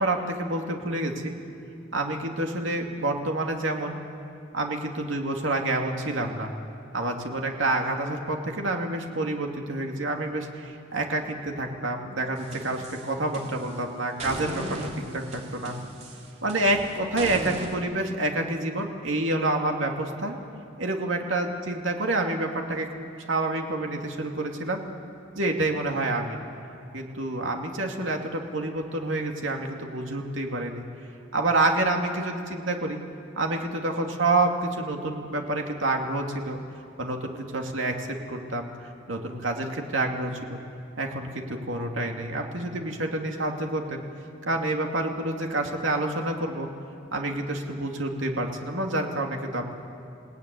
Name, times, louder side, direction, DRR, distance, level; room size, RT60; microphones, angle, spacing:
voice 1, 0.0-1.3 1.9-4.0 4.5-6.5 6.9-15.8 16.4-20.4 20.8-24.8 25.3-26.4 26.9-30.8 31.3-33.0 33.4-36.6 37.0-38.7 39.1-40.6 41.0-44.0 44.5-46.7 47.1-49.7, right 2 dB, 70° right, 2 dB, 2.7 m, -28 dB
sound 1, 12.4-13.8 14.2-17.7, right 1 dB, 35° right, 3.1 m, -37 dB
29.5 x 18.0 x 9.6 m, 2.5 s
head